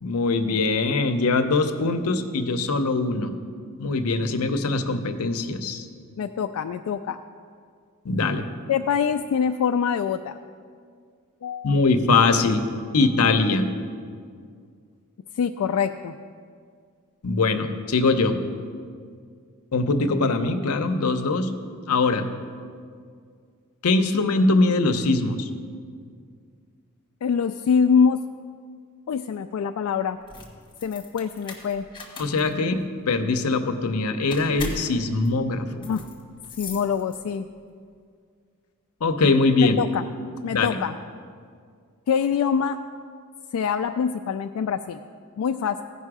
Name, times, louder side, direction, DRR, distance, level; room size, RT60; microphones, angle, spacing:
voice 1, 0.0-3.3 3.8-5.9 8.0-8.5 11.6-12.6 12.9-13.7 17.2-18.4 19.7-21.5 21.9-22.3 23.8-25.5 32.2-35.9 39.0-39.8 40.5-40.7, left 3 dB, 90° left, 8 dB, 0.7 m, -22 dB
voice 2, 6.2-7.2 8.7-10.4 11.4-11.8 15.4-16.1 27.2-28.2 29.1-30.2 30.8-31.9 35.9-36.1 36.6-37.5 39.6-40.1 40.4-41.0 42.1-42.8 43.5-45.0 45.4-45.8, left 6 dB, 70° left, 7 dB, 0.3 m, -24 dB
sound 1, 30.2-37.5, left 3 dB, 20° left, 1.3 m, -40 dB
16.0 x 5.4 x 4.8 m, 2.1 s
head